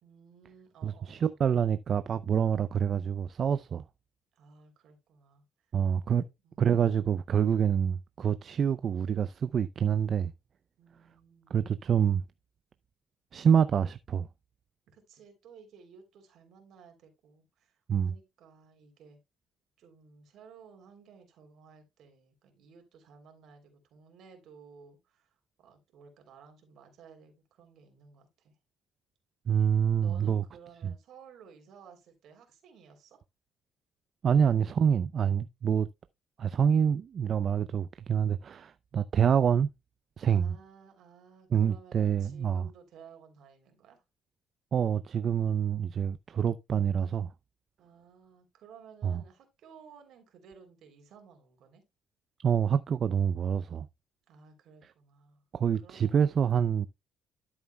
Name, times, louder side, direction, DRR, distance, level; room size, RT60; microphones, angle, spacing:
voice 1, 0.0-1.4 4.3-5.4 6.1-6.8 10.8-11.6 14.9-19.2 19.8-25.3 25.6-28.6 30.0-33.2 40.2-44.0 47.8-51.8 54.3-55.4 55.7-56.2, right 6 dB, 70° right, 3.2 m, -55 dB
voice 2, 0.8-3.8 5.7-6.2 6.6-10.3 11.5-12.2 13.3-14.3 17.9-18.1 29.5-30.4 30.8-30.9 34.2-35.9 36.4-39.7 40.2-40.5 41.5-42.7 44.7-47.3 49.0-49.2 52.4-53.9 55.5-56.9, right 8 dB, 50° right, 0.4 m, -26 dB
12.5 x 7.2 x 2.2 m
cardioid pair, 110°, 0 cm